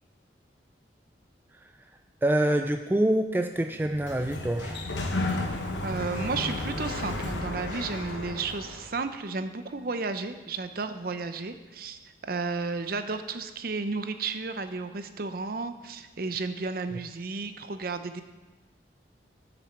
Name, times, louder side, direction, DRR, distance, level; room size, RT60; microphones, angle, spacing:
voice 1, 2.2-4.9, right 1 dB, 10° right, 5 dB, 0.3 m, -26 dB
Sliding door, 3.8-8.9, left 2 dB, 75° left, 1.1 m, -33 dB
voice 2, 5.8-18.2, right 4 dB, 50° right, 9 dB, 0.6 m, -33 dB
7.6 x 6.9 x 7.2 m, 1.2 s
head